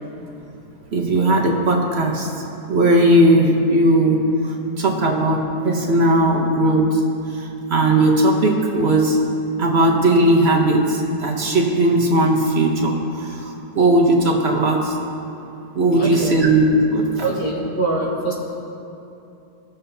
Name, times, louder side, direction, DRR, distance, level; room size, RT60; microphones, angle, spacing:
voice 1, 0.9-2.3 2.7-7.0 7.3-9.2 9.6-15.0 15.7-17.1, right 1 dB, 50° right, 0 dB, 0.9 m, -17 dB
voice 2, 16.0-16.4 17.2-18.3, right 2 dB, 80° left, -4 dB, 2.3 m, -23 dB
18.5 x 6.7 x 2.7 m, 2.8 s
omnidirectional pair, 1.8 m